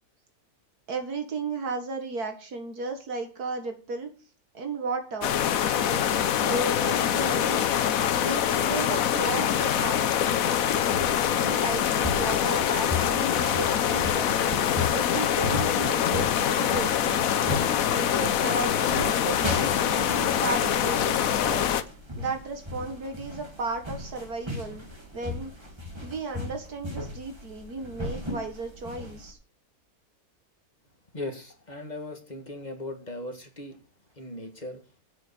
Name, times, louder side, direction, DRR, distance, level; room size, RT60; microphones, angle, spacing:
voice 1, 0.9-4.1 4.5-5.4 5.9-7.6 8.1-10.2 11.4-14.4 14.9-17.2 17.9-21.7 22.2-24.9 25.1-25.5 26.0-29.4, right 3 dB, 85° right, 6 dB, 2.3 m, -34 dB
sound 1, 5.2-21.8, left 9 dB, 70° left, 1.1 m, -24 dB
sound 2, 10.6-29.3, left 2 dB, 20° right, 2.1 m, -37 dB
voice 2, 31.1-33.8 34.2-34.8, left 1 dB, 30° left, 4 dB, 1.7 m, -38 dB
8.4 x 7.4 x 6.8 m, 0.38 s
omnidirectional pair, 1.6 m